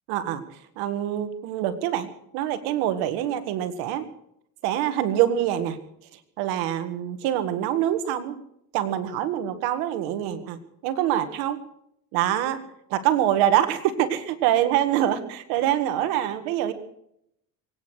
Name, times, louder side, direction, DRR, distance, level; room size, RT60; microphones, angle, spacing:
voice 1, 0.1-0.4 0.8-4.1 4.6-5.8 6.4-8.4 8.7-11.6 12.1-12.6 12.9-16.7, right 11 dB, 90° right, 11 dB, 1.8 m, -25 dB
23.0 x 9.6 x 6.4 m, 0.74 s
supercardioid pair, 85°, 36 cm